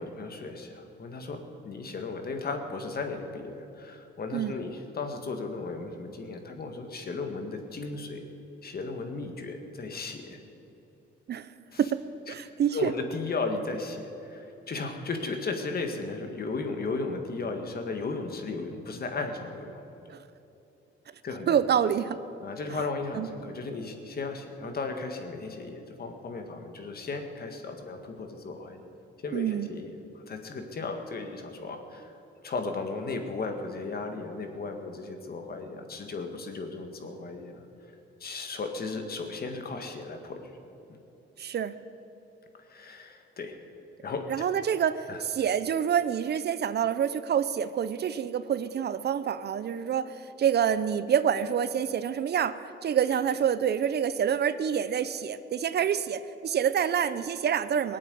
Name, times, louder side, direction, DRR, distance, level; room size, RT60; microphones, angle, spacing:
voice 1, 0.0-8.2 8.6-10.4 11.7-11.8 12.3-12.4 12.7-19.8 21.2-21.5 22.4-28.8 29.2-29.9 30.3-32.1 32.4-37.6 38.2-40.4 40.9-41.0 42.7-43.5 44.0-44.5 45.1-45.2, left 3 dB, 50° left, 5 dB, 1.9 m, -35 dB
voice 2, 12.3-12.9 20.1-20.2 21.5-22.2 23.1-23.3 29.3-29.7 41.4-41.7 44.3-58.0, right 8 dB, 55° right, 14 dB, 0.6 m, -27 dB
19.0 x 8.7 x 8.2 m, 3.0 s
cardioid pair, 100°, 21 cm